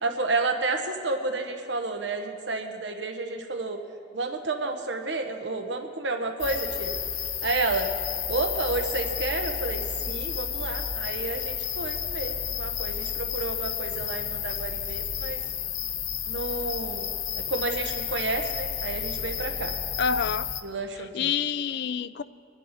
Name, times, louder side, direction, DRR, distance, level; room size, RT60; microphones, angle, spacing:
voice 1, 0.0-3.8 4.1-6.9 7.4-7.9 8.3-15.4 16.3-19.7 20.6-21.3, right 3 dB, 75° right, 5 dB, 1.0 m, -31 dB
sound 1, 6.4-20.6, left 8 dB, 90° left, 0.9 m, -31 dB
voice 2, 20.0-20.5 21.0-22.2, left 7 dB, 60° left, 15 dB, 0.4 m, -27 dB
25.0 x 10.0 x 4.1 m, 2.3 s
head